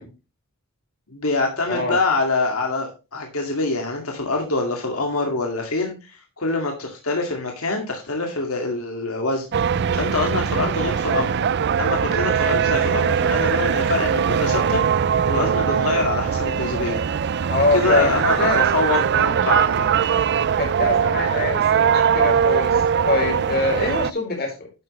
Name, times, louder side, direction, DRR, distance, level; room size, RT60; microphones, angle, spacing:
voice 1, 1.1-9.6 9.9-11.4 11.8-14.8 15.3-17.0 17.7-19.9, left 3 dB, 90° left, 2 dB, 2.2 m, -25 dB
sound 1, 9.5-24.1, right 7 dB, 50° right, 0.4 m, -21 dB
voice 2, 17.5-18.6 20.6-24.7, left 2 dB, 50° left, 1 dB, 4.5 m, -24 dB
11.5 x 7.6 x 3.2 m, 0.30 s
head